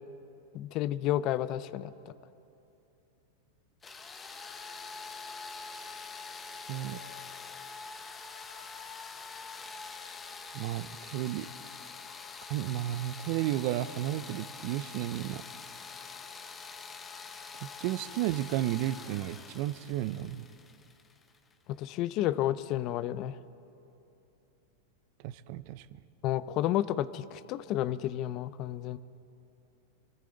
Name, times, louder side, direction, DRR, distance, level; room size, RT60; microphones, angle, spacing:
voice 1, 0.5-2.1 21.7-23.4 26.2-29.0, left 13 dB, 45° left, 16 dB, 0.5 m, -31 dB
sound 1, 3.8-21.5, left 5 dB, 20° left, 0.8 m, -45 dB
voice 2, 6.7-7.0 10.5-11.5 12.5-15.4 17.6-20.4 25.2-25.9, right 14 dB, 55° right, 17 dB, 0.5 m, -33 dB
24.0 x 14.0 x 3.9 m, 2.8 s
hypercardioid pair, 125°, 0 cm